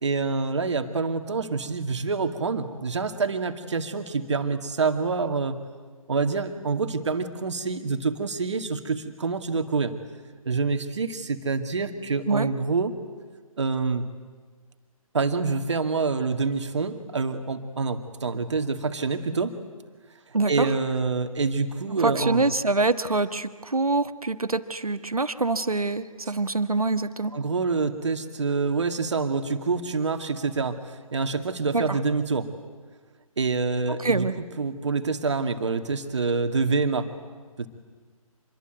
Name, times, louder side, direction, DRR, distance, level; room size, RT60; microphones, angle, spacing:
voice 1, 0.0-5.6 6.1-9.9 10.5-13.0 13.6-14.0 15.1-19.6 20.5-22.4 27.3-32.5 33.4-34.3 34.6-37.1 37.6-37.7, right 4 dB, 50° right, 7 dB, 2.2 m, -26 dB
voice 2, 20.3-20.7 22.0-27.3 31.7-32.0 34.0-34.3, right 3 dB, 80° right, 11 dB, 1.4 m, -25 dB
26.5 x 21.5 x 9.3 m, 1.5 s
figure-of-eight pair, 145°, 18 cm